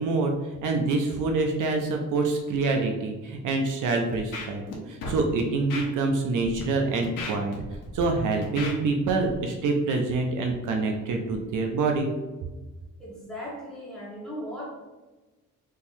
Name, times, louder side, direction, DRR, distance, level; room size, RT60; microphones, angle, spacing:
voice 1, 0.0-7.5 7.9-12.1, right 3 dB, 70° right, 3 dB, 0.5 m, -26 dB
Scratching (performance technique), 4.1-4.7 5.0-5.2 5.7-5.8 6.4-6.6 7.0-8.0 8.4-8.7 9.2-9.3, left 3 dB, 80° left, 0.8 m, -35 dB
voice 2, 13.0-14.7, equal, ahead, -7 dB, 1.2 m, -37 dB
3.7 x 2.9 x 2.6 m, 1.2 s
cardioid pair, 140°, 33 cm